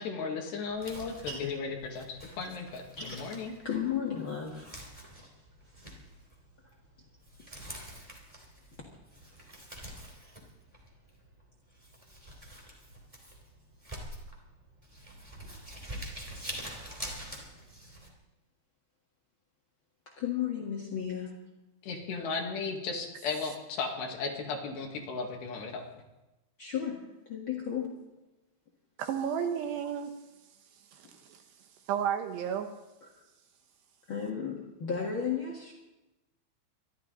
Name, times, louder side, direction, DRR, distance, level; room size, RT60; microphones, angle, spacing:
voice 1, 0.0-3.6 21.8-25.8, left 4 dB, 70° left, 1 dB, 3.8 m, -35 dB
Crumpling crinkling, 0.7-18.1, right 1 dB, 10° right, 1.8 m, -46 dB
voice 2, 3.0-3.3 3.6-4.7 7.4-7.5 20.2-21.3 26.6-28.0 33.0-33.1 34.1-35.7, left 7 dB, 85° left, 0 dB, 1.1 m, -34 dB
voice 3, 29.0-30.1 30.9-31.4 31.9-32.7, right 8 dB, 75° right, 6 dB, 2.8 m, -32 dB
25.0 x 12.0 x 3.9 m, 1.0 s
omnidirectional pair, 5.5 m